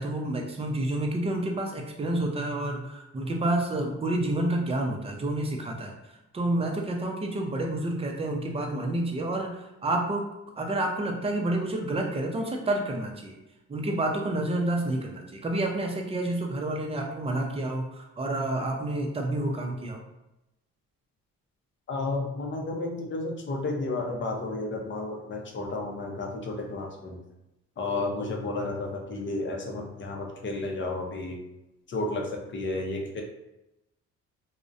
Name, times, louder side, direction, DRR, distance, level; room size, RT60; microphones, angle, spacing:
voice 1, 0.0-5.9 6.3-10.3 10.6-13.4 13.7-20.0, right 1 dB, 20° right, 2 dB, 0.4 m, -29 dB
voice 2, 21.9-27.2 27.8-31.4 31.9-33.2, left 2 dB, 40° left, 1 dB, 0.5 m, -32 dB
2.4 x 2.1 x 2.5 m, 0.93 s
cardioid pair, 90°, 30 cm